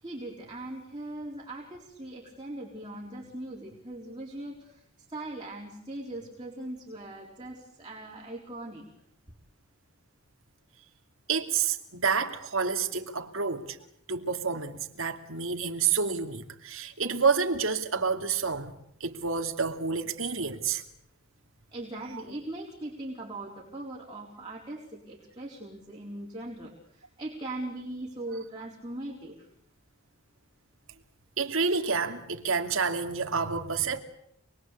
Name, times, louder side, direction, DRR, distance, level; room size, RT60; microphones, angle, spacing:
voice 1, 0.0-4.7 5.1-8.9 21.7-29.4, right 1 dB, 20° right, 4.2 m, -40 dB
voice 2, 11.3-13.8 14.1-18.7 19.0-20.8 22.1-22.2 31.4-34.0, right 5 dB, 70° right, 2.7 m, -29 dB
28.0 x 21.5 x 8.4 m
head